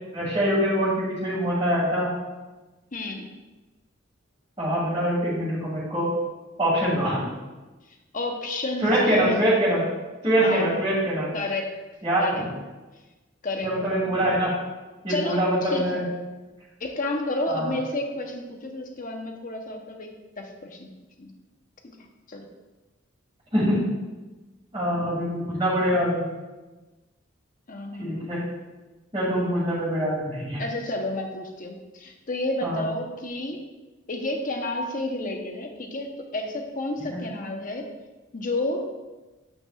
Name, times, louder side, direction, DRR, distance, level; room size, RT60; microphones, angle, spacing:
voice 1, 0.1-2.1 4.6-6.1 6.6-7.2 8.8-9.9 10.2-11.3 12.0-12.5 13.6-14.5 15.0-16.0 17.5-17.7 23.5-23.8 24.7-26.3 28.0-28.4 29.1-30.6 32.6-32.8 37.1-37.2, equal, 25° right, -11 dB, 2.5 m, -24 dB
voice 2, 2.9-3.3 8.1-9.4 10.4-10.7 11.3-11.7 12.2-12.4 13.4-13.7 15.1-16.0 16.8-20.1 20.4-20.9 21.2-21.3 21.8-22.0 22.3-22.5 27.7-28.3 30.6-33.6 34.1-37.8 38.3-38.8, left 2 dB, 45° left, 3 dB, 1.0 m, -31 dB
8.7 x 8.4 x 2.5 m, 1.2 s
head